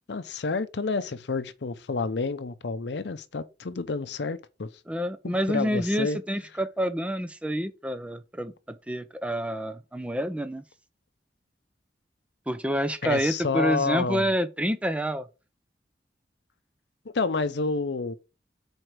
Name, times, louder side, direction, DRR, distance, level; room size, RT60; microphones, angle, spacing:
voice 1, 0.1-4.7 5.2-6.2 13.0-14.2 17.1-18.1, left 4 dB, 75° left, 0.6 m, -29 dB
voice 2, 4.9-10.6 12.5-15.3, equal, 5° right, 0.5 m, -28 dB
4.9 x 4.4 x 6.0 m
head